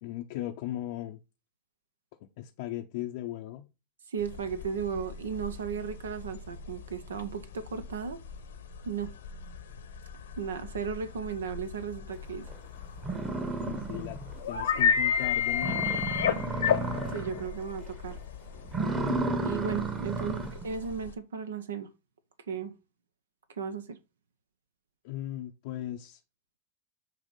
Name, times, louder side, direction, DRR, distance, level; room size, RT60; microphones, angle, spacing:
voice 1, 0.0-1.2 2.2-3.7 13.8-14.2 14.4-15.9 20.3-20.5 25.0-26.2, left 13 dB, 60° left, 0.6 m, -37 dB
voice 2, 4.1-8.2 8.8-9.1 10.4-12.5 17.1-18.2 19.4-21.9 22.5-22.7 23.5-24.0, right 6 dB, 75° right, 0.6 m, -35 dB
sound 1, 4.2-21.1, left 8 dB, 75° left, 0.9 m, -32 dB
sound 2, 12.5-12.6 13.0-14.4 14.8-14.9 15.2-15.3 15.6-17.5 17.8-18.1 18.6-20.6, right 3 dB, 25° right, 1.2 m, -32 dB
7.4 x 2.9 x 5.2 m
hypercardioid pair, 90°, 0 cm